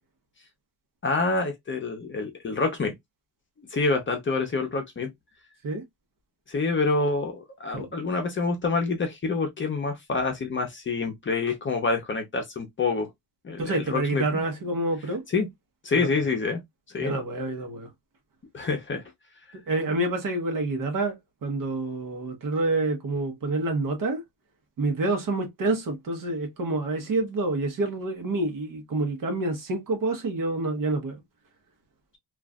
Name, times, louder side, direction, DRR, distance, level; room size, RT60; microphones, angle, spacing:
voice 1, 1.0-2.9 3.6-5.1 6.5-13.1 13.4-14.4 15.3-15.5 15.8-16.6 16.9-17.2 18.5-19.0, left 3 dB, 30° left, 0.7 m, -27 dB
voice 2, 13.6-15.2 15.9-16.3 17.0-17.9 19.5-24.2 24.8-31.2, right 2 dB, 55° right, 1.0 m, -28 dB
3.0 x 2.5 x 2.3 m
wide cardioid pair, 175°, 40 cm